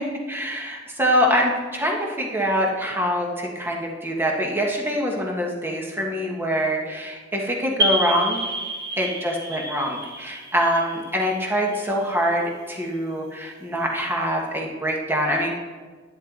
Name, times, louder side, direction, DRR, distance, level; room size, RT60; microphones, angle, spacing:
voice 1, 0.3-8.4 9.0-15.5, equal, 10° right, 0 dB, 1.5 m, -24 dB
sound 1, 7.8-12.2, right 1 dB, 55° right, 1.9 m, -29 dB
11.0 x 10.0 x 3.9 m, 1.4 s
head